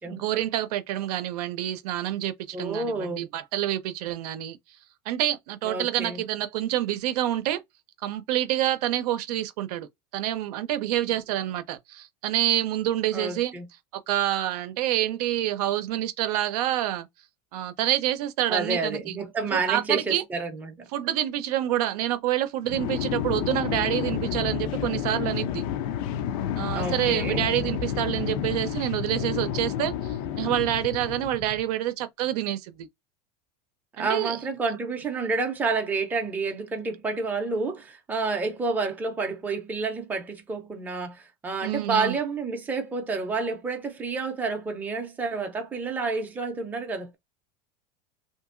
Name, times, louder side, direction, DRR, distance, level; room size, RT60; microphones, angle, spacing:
voice 1, 0.0-4.6 5.1-7.6 8.0-9.9 10.1-13.5 13.9-17.1 17.5-19.0 19.5-20.2 20.9-25.6 26.6-29.9 30.4-32.9 34.0-34.4 41.6-42.1, right 13 dB, 80° right, 0.6 m, -27 dB
voice 2, 2.5-3.3 5.6-6.2 13.1-13.7 18.5-20.9 26.7-27.4 33.9-47.1, right 4 dB, 10° right, 0.5 m, -29 dB
sound 1, 22.7-31.6, left 9 dB, 60° left, 0.5 m, -30 dB
2.8 x 2.6 x 2.5 m
supercardioid pair, 155°, 20 cm